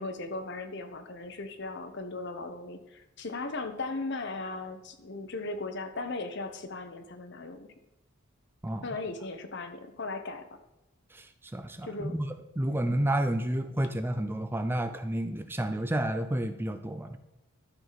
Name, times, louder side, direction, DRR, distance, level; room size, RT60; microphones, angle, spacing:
voice 1, 0.0-7.7 8.8-10.4 11.8-12.2 12.7-13.0, left 3 dB, 55° left, 8 dB, 1.0 m, -37 dB
voice 2, 11.1-17.2, right 1 dB, 10° right, 8 dB, 0.4 m, -31 dB
12.0 x 6.1 x 4.0 m, 0.96 s
head